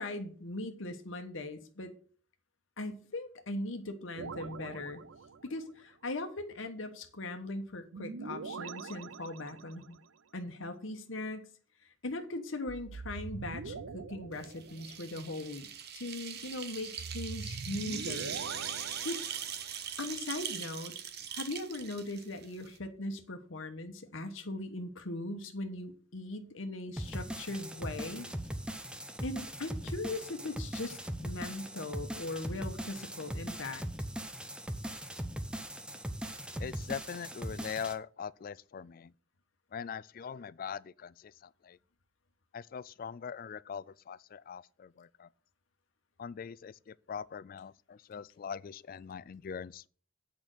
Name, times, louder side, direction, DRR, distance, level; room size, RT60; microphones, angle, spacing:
voice 1, 0.0-1.9 2.8-5.0 5.4-10.0 10.3-11.5 11.8-15.7 15.9-18.4 19.0-19.2 20.0-20.9 21.3-28.3 29.2-33.8, left 2 dB, 75° left, 1.2 m, -39 dB
sound 1, 4.2-5.7 7.9-10.0 12.7-15.2 17.0-20.0, right 5 dB, 85° right, 0.6 m, -43 dB
sound 2, 14.4-22.8, right 8 dB, 55° right, 1.1 m, -41 dB
sound 3, 27.0-37.9, right 1 dB, 5° right, 0.8 m, -40 dB
voice 2, 36.6-39.1 39.7-41.8 42.5-45.3 46.2-49.9, left 7 dB, 45° left, 0.3 m, -42 dB
8.8 x 5.2 x 7.6 m
head